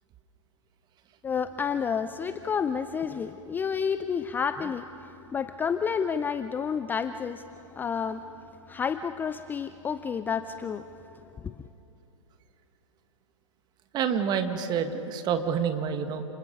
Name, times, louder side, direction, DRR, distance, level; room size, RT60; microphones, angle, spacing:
voice 1, 1.2-4.9 5.3-7.4 7.8-8.2 8.7-10.8 11.4-11.5, left 6 dB, 10° left, 11 dB, 0.4 m, -30 dB
voice 2, 13.9-16.2, right 7 dB, 25° right, 7 dB, 1.7 m, -28 dB
30.0 x 28.0 x 5.2 m, 2.8 s
figure-of-eight pair, 115°, 17 cm